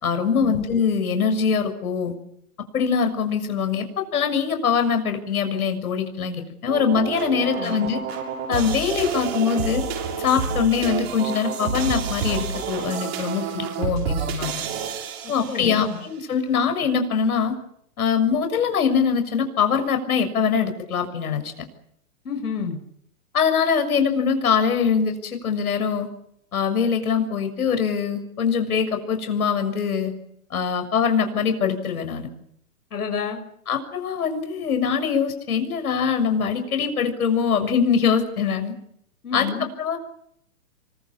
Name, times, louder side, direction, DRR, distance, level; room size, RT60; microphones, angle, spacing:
voice 1, 0.0-2.1 2.7-8.0 8.5-9.8 10.2-14.6 15.3-17.5 18.0-21.7 23.3-26.1 26.5-30.1 30.5-32.3 33.7-38.8 39.3-39.5 39.8-40.0, left 6 dB, 75° left, 7 dB, 6.7 m, -23 dB
sound 1, 6.7-15.9, right 6 dB, 45° right, 7.0 m, -29 dB
voice 2, 7.4-7.7 15.2-16.0 22.2-22.8 32.9-33.4 39.2-39.7, left 6 dB, 90° left, 4 dB, 6.2 m, -30 dB
28.0 x 24.5 x 7.3 m, 0.71 s
hypercardioid pair, 170°, 44 cm